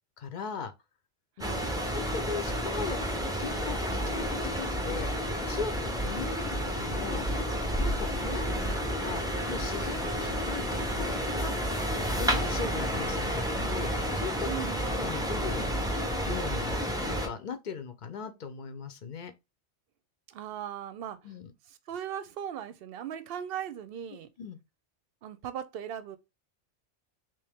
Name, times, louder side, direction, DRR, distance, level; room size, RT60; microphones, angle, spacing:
voice 1, 0.2-0.7 1.4-1.5 1.9-3.1 3.4-3.8 4.1-5.1 5.5-7.3 7.8-14.5 14.9-15.6 16.2-16.8 17.1-19.3 21.2-21.5 24.4-24.6, left 6 dB, 50° left, 0.7 m, -39 dB
sound 1, 1.4-17.3, equal, 5° right, 0.5 m, -30 dB
voice 2, 1.4-1.7 8.2-9.0 14.4-15.0 20.3-21.2 21.7-24.3 25.2-26.2, right 9 dB, 60° right, 0.8 m, -39 dB
3.4 x 3.0 x 3.5 m
omnidirectional pair, 1.2 m